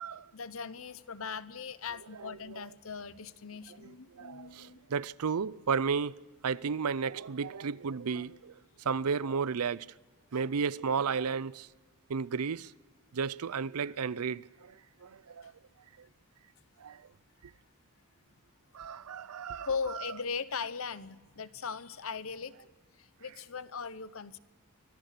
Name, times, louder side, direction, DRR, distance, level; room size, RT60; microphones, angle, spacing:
voice 1, 0.3-4.8 19.6-22.5 23.0-24.4, left 5 dB, 70° left, 0.9 m, -39 dB
voice 2, 4.2-6.1 6.4-8.5 8.9-9.9 10.3-11.7 12.1-12.7 13.1-14.7 15.0-15.5 16.8-17.0 18.7-19.7, right 5 dB, 85° right, 0.5 m, -33 dB
25.0 x 18.0 x 6.7 m
head